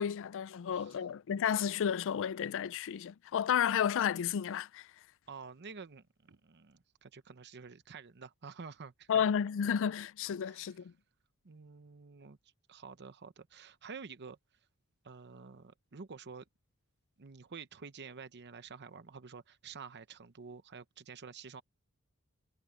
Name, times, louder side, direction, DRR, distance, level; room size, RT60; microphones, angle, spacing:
voice 1, 0.0-4.9 9.1-10.9, left 8 dB, 60° left, 0.4 m, -32 dB
voice 2, 0.7-1.1 5.3-9.2 10.4-10.8 11.4-12.4 12.7-14.4 15.0-16.4 17.2-21.6, right 5 dB, 50° right, 0.8 m, -49 dB
head